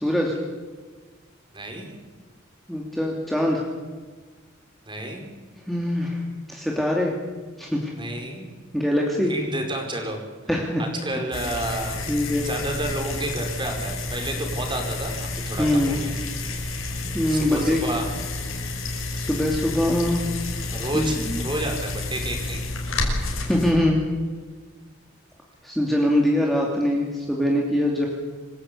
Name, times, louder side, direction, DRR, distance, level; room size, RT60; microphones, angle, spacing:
voice 1, 0.0-0.3 2.7-3.6 5.7-7.2 7.6-7.9 8.7-9.3 10.5-10.8 12.1-12.5 15.6-15.9 17.1-17.8 19.1-20.3 20.9-21.4 23.5-24.0 25.6-28.1, left 1 dB, ahead, -2 dB, 2.7 m, -23 dB
voice 2, 1.5-1.9 4.9-5.2 8.0-8.5 9.2-10.2 10.8-12.1 12.4-16.1 17.3-18.1 20.7-21.2 21.4-22.6, right 1 dB, 25° right, 3 dB, 4.9 m, -30 dB
sound 1, 11.3-23.7, left 2 dB, 85° left, 5.6 m, -30 dB
26.5 x 16.0 x 8.4 m, 1.4 s
head